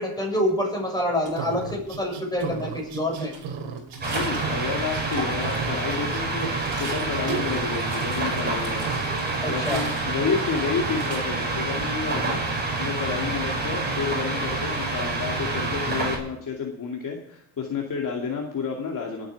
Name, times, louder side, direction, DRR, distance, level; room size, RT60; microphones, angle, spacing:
voice 1, 0.0-3.3 9.4-9.8, left 1 dB, 10° left, -1 dB, 7.2 m, -27 dB
sound 1, 1.2-2.0 2.4-4.6 4.9-5.8 6.2-11.9, right 4 dB, 35° right, 5.6 m, -39 dB
sound 2, 1.4-5.1 5.4-7.7 8.0-8.5 8.8-9.1, right 6 dB, 65° right, 3.5 m, -35 dB
sound 3, 4.0-16.2, right 2 dB, 20° right, 6.3 m, -27 dB
voice 2, 4.1-8.8 9.4-12.4 12.8-19.3, left 5 dB, 40° left, 0 dB, 2.6 m, -30 dB
25.5 x 9.1 x 4.9 m, 0.71 s
supercardioid pair, 95°, 50 cm